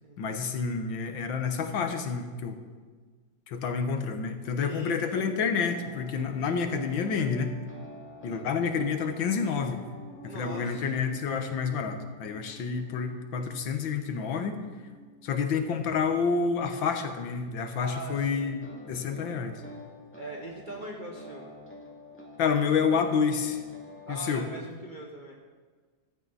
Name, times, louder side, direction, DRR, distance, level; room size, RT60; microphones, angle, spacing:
voice 1, 0.2-2.6 3.5-7.5 8.2-9.8 10.2-14.6 15.2-19.6 22.4-23.6 24.1-24.4, left 5 dB, 90° left, 7 dB, 1.9 m, -29 dB
voice 2, 4.6-5.3 10.3-11.0 17.8-18.5 20.1-21.5 24.1-25.3, right 2 dB, 30° right, -1 dB, 1.3 m, -41 dB
sound 1, 5.1-17.0 18.1-24.2, left 1 dB, 5° left, 2.3 m, -49 dB
15.0 x 14.0 x 4.1 m, 1.5 s
omnidirectional pair, 2.0 m